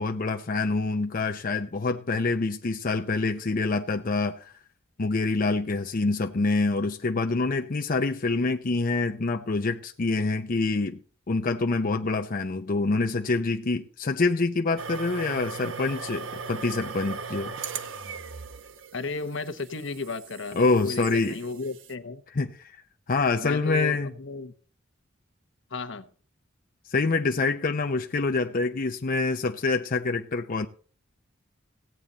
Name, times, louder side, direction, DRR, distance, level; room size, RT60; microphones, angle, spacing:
voice 1, 0.0-4.5 5.0-11.0 11.3-17.5 20.5-21.4 22.3-24.1 26.9-30.7, left 3 dB, 45° left, 0.6 m, -26 dB
sound 1, 14.8-21.9, right 5 dB, 70° right, 1.0 m, -39 dB
voice 2, 18.9-22.2 23.4-24.5 25.7-26.1, left 3 dB, 65° left, 1.0 m, -34 dB
16.5 x 8.7 x 4.0 m
head